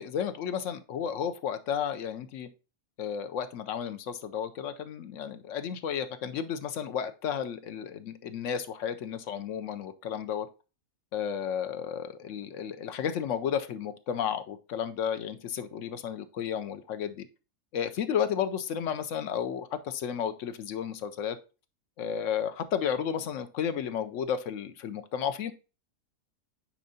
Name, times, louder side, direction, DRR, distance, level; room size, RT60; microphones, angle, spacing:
voice 1, 0.0-2.5 3.0-10.5 11.1-17.3 17.7-21.4 22.0-25.5, left 8 dB, 70° left, 10 dB, 0.8 m, -32 dB
10.0 x 4.5 x 2.7 m, 0.32 s
omnidirectional pair, 1.7 m